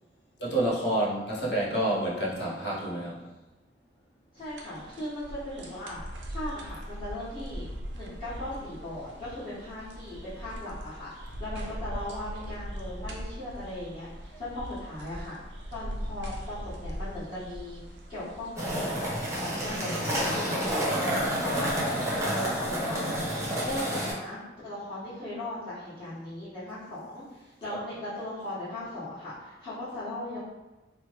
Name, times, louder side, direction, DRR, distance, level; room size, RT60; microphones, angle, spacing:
voice 1, 0.4-3.3 27.7-27.8, right 1 dB, 65° left, -4 dB, 0.7 m, -29 dB
voice 2, 4.3-6.0 6.3-7.7 7.9-15.4 15.7-17.8 18.1-19.9 20.3-21.1 21.4-23.3 23.6-30.4, left 1 dB, 30° left, -17 dB, 1.2 m, -38 dB
sound 1, 4.4-20.2, equal, 85° right, 0.4 m, -41 dB
sound 2, 18.6-24.1, equal, 15° right, 0.6 m, -29 dB
3.0 x 2.1 x 3.0 m, 1.1 s
head